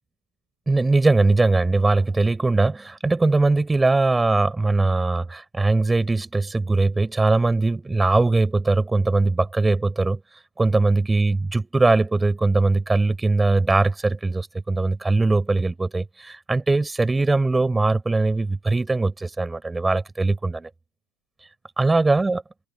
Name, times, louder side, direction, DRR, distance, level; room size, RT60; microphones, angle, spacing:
voice 1, 0.7-10.2 10.6-20.7 21.8-22.4, right 3 dB, 10° right, 5.8 m, -21 dB
figure-of-eight pair, 90°, 0 cm